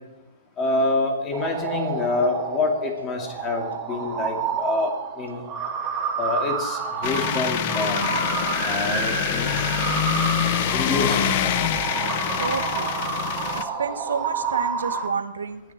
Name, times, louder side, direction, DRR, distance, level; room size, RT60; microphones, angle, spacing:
voice 1, 0.6-5.4 6.2-8.1 8.6-9.5 10.7-11.4, left 3 dB, 20° left, 2 dB, 2.4 m, -26 dB
sound 1, 1.3-15.1, right 5 dB, 20° right, 2.2 m, -29 dB
sound 2, 7.0-13.6, left 11 dB, 40° left, 0.8 m, -25 dB
voice 2, 12.4-12.9 13.5-15.6, right 5 dB, 90° right, 9 dB, 1.1 m, -29 dB
19.5 x 9.7 x 3.6 m, 0.98 s
hypercardioid pair, 150°, 0 cm